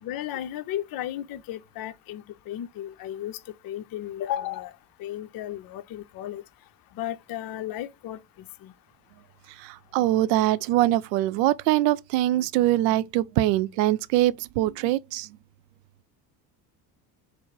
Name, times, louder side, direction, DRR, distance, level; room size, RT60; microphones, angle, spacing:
voice 1, 0.0-4.7 5.0-6.4 6.9-8.7, left 12 dB, 45° left, 0.6 m, -34 dB
voice 2, 9.6-15.3, right 15 dB, 80° right, 0.6 m, -23 dB
4.6 x 2.1 x 4.5 m
hypercardioid pair, 65°, 48 cm